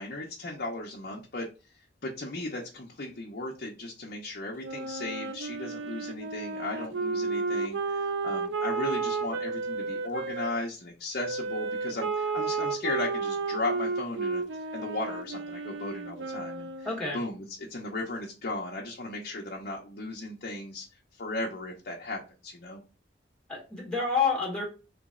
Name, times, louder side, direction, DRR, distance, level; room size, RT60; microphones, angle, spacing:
voice 1, 0.0-1.5 2.0-16.9 17.1-20.8 21.1-22.8, left 2 dB, 60° left, -2 dB, 0.7 m, -36 dB
Wind instrument woodwind instrument, 4.6-10.5 11.2-17.0, right 4 dB, 90° right, 0.5 m, -32 dB
voice 2, 16.8-17.2 23.5-24.6, left 5 dB, 5° left, -2 dB, 1.2 m, -28 dB
3.3 x 3.1 x 3.7 m, 0.32 s
head